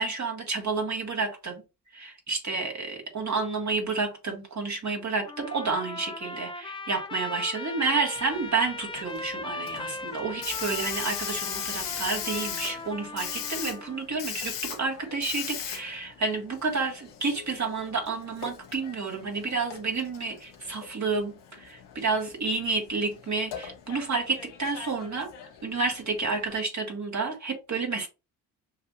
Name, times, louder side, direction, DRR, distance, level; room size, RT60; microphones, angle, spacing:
voice 1, 0.0-1.6 1.9-25.3 25.6-28.1, right 4 dB, 35° right, 1.8 m, -30 dB
Trumpet, 5.3-14.1, left 2 dB, 10° left, 0.5 m, -39 dB
Hiss, 8.2-26.6, left 8 dB, 60° left, 1.1 m, -40 dB
6.5 x 2.7 x 2.5 m
hypercardioid pair, 45°, 48 cm